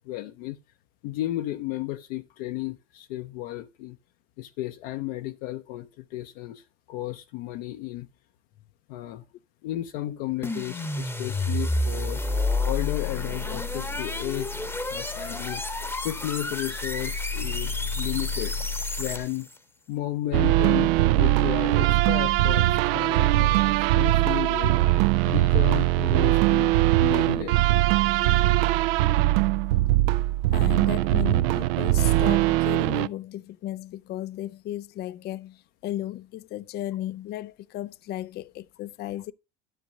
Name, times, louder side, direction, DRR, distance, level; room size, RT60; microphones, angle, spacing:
voice 1, 0.0-0.6 1.0-4.0 4.4-8.1 8.9-9.2 9.6-12.2 12.6-14.6 14.9-15.6 16.0-18.6 19.0-19.5 19.9-27.6, left 15 dB, 55° left, 0.7 m, -33 dB
sound 1, 10.4-19.5, left 2 dB, 5° left, 1.0 m, -29 dB
sound 2, 20.3-33.1, right 16 dB, 55° right, 0.4 m, -21 dB
voice 2, 30.5-39.3, left 13 dB, 30° left, 0.4 m, -35 dB
12.5 x 6.9 x 2.7 m
figure-of-eight pair, 75°, 35 cm